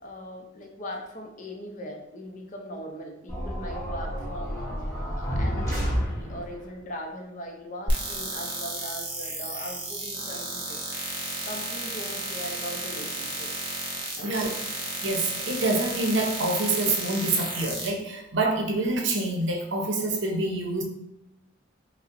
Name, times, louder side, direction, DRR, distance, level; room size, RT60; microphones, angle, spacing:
voice 1, 0.0-4.8 5.2-10.8 11.4-13.5 14.1-14.5, equal, 40° left, 2 dB, 0.5 m, -39 dB
sound 1, 3.3-6.6, equal, 15° left, 0.9 m, -30 dB
sound 2, 7.9-17.9, right 2 dB, 25° right, 0.6 m, -33 dB
voice 2, 15.0-20.8, right 2 dB, 70° right, 1 dB, 0.6 m, -26 dB
5.2 x 2.0 x 2.5 m, 0.90 s
head